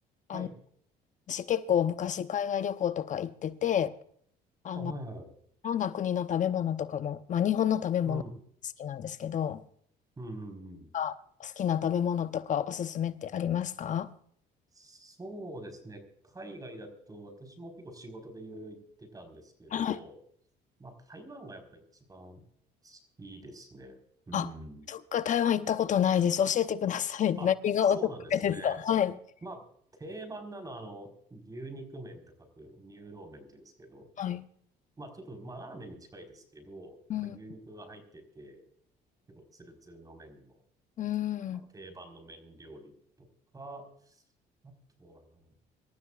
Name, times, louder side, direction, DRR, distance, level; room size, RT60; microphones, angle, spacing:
voice 1, 1.3-4.0 4.6-4.9 5.6-8.2 8.8-9.6 10.9-11.1 11.4-14.1 19.7-20.0 24.3-24.5 24.9-28.0 28.3-29.1 34.2-34.4 37.1-37.4 41.0-41.6, left 9 dB, 45° left, 0.8 m, -29 dB
voice 2, 4.7-5.3 8.0-8.4 10.2-10.9 14.7-20.2 20.8-21.8 22.1-22.4 22.8-24.0 24.3-24.8 27.4-27.5 27.8-28.8 29.4-29.7 29.9-34.1 35.0-38.6 39.3-40.6 41.5-42.9 43.2-43.3 43.5-44.2 44.6-45.5, right 1 dB, 20° right, 4.4 m, -45 dB
25.5 x 13.5 x 2.4 m
cardioid pair, 110°, 17 cm